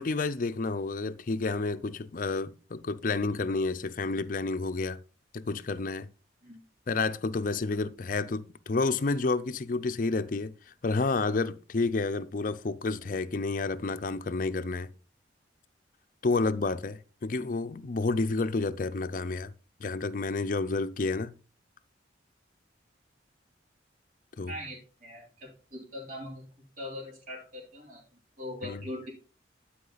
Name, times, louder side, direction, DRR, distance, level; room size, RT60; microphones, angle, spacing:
voice 1, 0.0-5.0 5.3-6.1 6.9-10.5 10.8-14.9 16.2-19.5 19.8-21.4 24.4-24.5 28.6-28.8, left 3 dB, 45° left, 0.5 m, -30 dB
voice 2, 24.5-26.5 26.8-29.1, left 1 dB, 50° right, 3.6 m, -41 dB
11.5 x 4.9 x 4.0 m
head